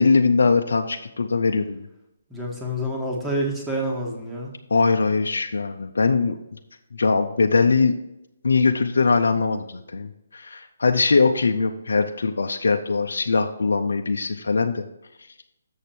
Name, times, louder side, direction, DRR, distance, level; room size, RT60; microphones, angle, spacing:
voice 1, 0.0-1.9 4.7-6.4 6.9-7.9 8.4-14.9, left 4 dB, 75° left, 5 dB, 0.6 m, -21 dB
voice 2, 2.3-4.5, equal, 5° right, -3 dB, 1.6 m, -27 dB
7.2 x 6.6 x 4.4 m, 0.88 s
hypercardioid pair, 150°, 0 cm